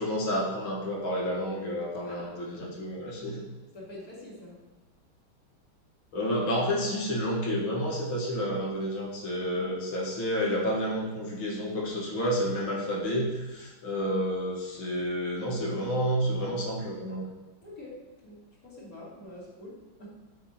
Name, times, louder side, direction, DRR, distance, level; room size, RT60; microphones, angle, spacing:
voice 1, 0.0-3.4 6.1-17.3, equal, 75° left, -3 dB, 2.5 m, -30 dB
voice 2, 2.0-2.4 3.7-4.6 9.5-9.7 17.6-20.1, left 1 dB, 45° left, -6 dB, 2.9 m, -46 dB
8.7 x 7.9 x 3.0 m, 1.2 s
omnidirectional pair, 2.2 m